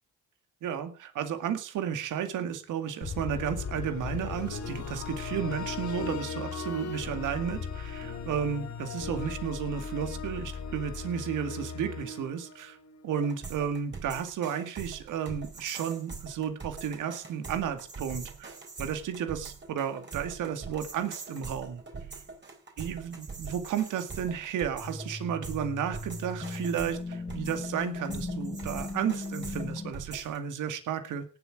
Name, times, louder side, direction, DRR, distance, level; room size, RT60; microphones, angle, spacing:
voice 1, 0.6-12.8 13.0-18.5 18.8-21.8 22.8-31.2, right 8 dB, 85° right, 8 dB, 2.2 m, -33 dB
sound 1, 3.0-13.2, left 5 dB, 60° left, 3.8 m, -37 dB
sound 2, 13.2-30.4, right 4 dB, 35° right, 4.2 m, -43 dB
sound 3, 24.8-29.9, left 3 dB, 20° left, 1.9 m, -38 dB
18.0 x 8.1 x 4.8 m, 0.36 s
cardioid pair, 75°, 30 cm